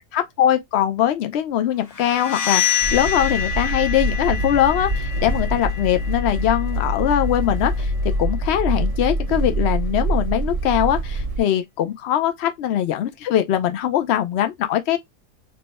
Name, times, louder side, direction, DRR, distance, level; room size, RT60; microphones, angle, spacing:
voice 1, 0.1-7.9 8.2-15.0, left 11 dB, 85° left, 0.5 m, -21 dB
sound 1, 1.9-7.6, left 8 dB, 60° left, 0.9 m, -27 dB
sound 2, 2.8-11.4, right 1 dB, 70° right, 0.3 m, -24 dB
3.3 x 2.1 x 4.0 m
omnidirectional pair, 1.7 m